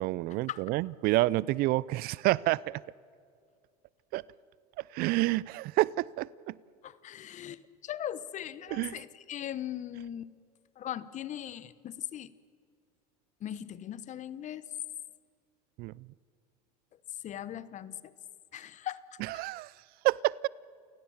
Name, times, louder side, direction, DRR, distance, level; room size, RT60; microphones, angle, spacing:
voice 1, 0.0-2.8 4.1-4.2 4.9-6.5 8.7-9.0 15.8-15.9 19.2-19.7 20.0-20.5, right 18 dB, 50° right, 23 dB, 0.5 m, -28 dB
voice 2, 6.8-10.3 10.8-12.3 13.4-14.7 17.2-18.1 18.5-19.0 19.3-19.4, left 11 dB, 40° left, 17 dB, 1.0 m, -39 dB
29.0 x 17.5 x 7.2 m, 2.2 s
supercardioid pair, 100°, 20 cm